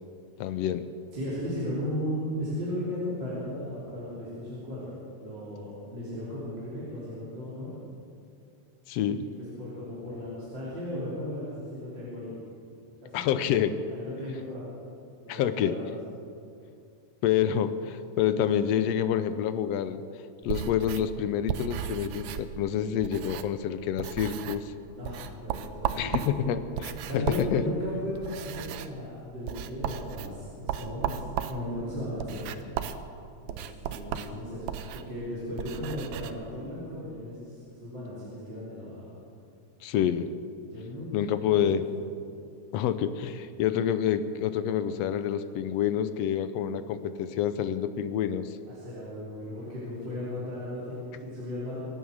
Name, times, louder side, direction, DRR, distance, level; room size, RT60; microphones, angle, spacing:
voice 1, 0.4-0.9 8.9-9.2 13.1-13.7 15.3-15.8 17.2-20.0 20.4-24.7 25.9-27.6 39.8-40.3 41.1-41.8 42.7-48.6, left 9 dB, 75° left, 12 dB, 1.6 m, -27 dB
voice 2, 1.1-4.9 5.2-7.8 9.1-9.2 9.6-12.3 13.0-14.7 15.2-15.8 25.0-26.6 26.9-31.2 31.5-32.5 33.4-39.1 40.7-41.8 48.7-51.8, left 1 dB, 40° right, -9 dB, 4.1 m, -36 dB
sound 1, 20.4-23.7 24.0-24.7 25.0-36.3, right 9 dB, 75° right, 1.9 m, -36 dB
24.0 x 9.3 x 6.4 m, 2.4 s
omnidirectional pair, 3.3 m